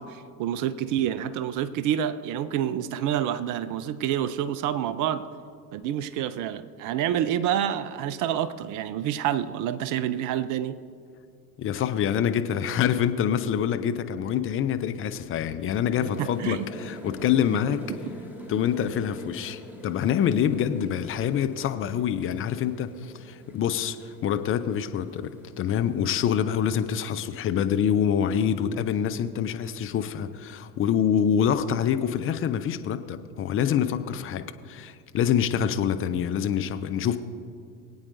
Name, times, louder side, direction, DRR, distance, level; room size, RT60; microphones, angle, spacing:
voice 1, 0.0-5.3 5.7-10.8 16.2-16.7 17.9-18.0, right 10 dB, 40° right, 15 dB, 0.6 m, -28 dB
voice 2, 11.6-17.9 18.5-24.0 24.2-37.2, left 8 dB, 25° left, 10 dB, 0.5 m, -26 dB
sound 1, 16.0-27.8, left 1 dB, 5° right, 2.1 m, -44 dB
23.0 x 8.7 x 2.6 m, 2.4 s
figure-of-eight pair, 75°, 49 cm